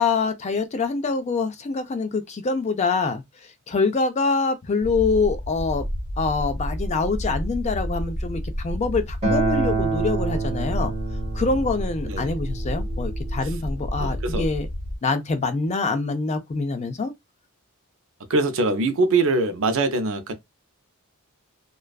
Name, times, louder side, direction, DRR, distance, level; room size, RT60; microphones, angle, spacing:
voice 1, 0.0-3.2 3.7-5.8 6.2-10.9 11.3-14.7 15.0-17.1, left 4 dB, 30° left, 0.4 m, -25 dB
sound 1, 4.8-15.0, equal, 75° left, 0.9 m, -30 dB
Acoustic guitar, 9.2-14.4, right 4 dB, 30° right, 1.1 m, -28 dB
voice 2, 14.0-14.5 18.3-20.3, right 3 dB, 60° right, 0.5 m, -23 dB
2.4 x 2.2 x 2.2 m
head